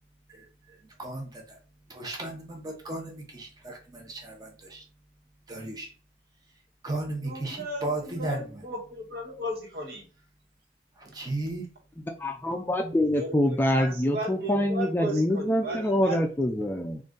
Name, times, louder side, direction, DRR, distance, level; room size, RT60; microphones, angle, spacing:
voice 1, 0.3-1.6 1.9-4.8 5.5-5.9 6.8-8.6 10.9-11.7 12.1-12.7, right 2 dB, 20° right, 1 dB, 0.8 m, -36 dB
voice 2, 7.2-7.9 8.2-10.1 13.1-16.2, right 1 dB, 60° right, -1 dB, 1.4 m, -35 dB
voice 3, 12.2-17.0, left 1 dB, 10° left, 3 dB, 0.3 m, -25 dB
3.9 x 2.5 x 3.7 m, 0.37 s
head